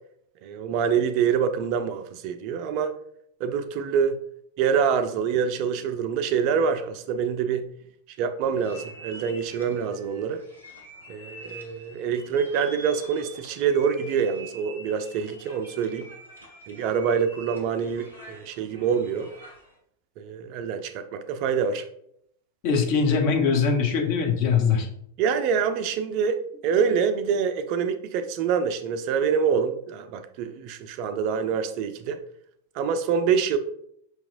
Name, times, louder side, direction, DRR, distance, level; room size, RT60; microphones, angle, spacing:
voice 1, 0.4-2.9 3.4-4.2 4.6-7.7 8.2-10.4 11.1-16.1 16.7-19.3 20.2-21.9 25.2-26.4 26.6-32.2 32.7-33.6, right 7 dB, 45° right, 10 dB, 0.3 m, -25 dB
sound 1, 8.5-19.7, right 2 dB, 85° left, 1.0 m, -46 dB
voice 2, 22.6-24.9, left 5 dB, 45° left, 2 dB, 0.8 m, -22 dB
5.7 x 2.9 x 2.5 m, 0.71 s
figure-of-eight pair, 90°, 0 cm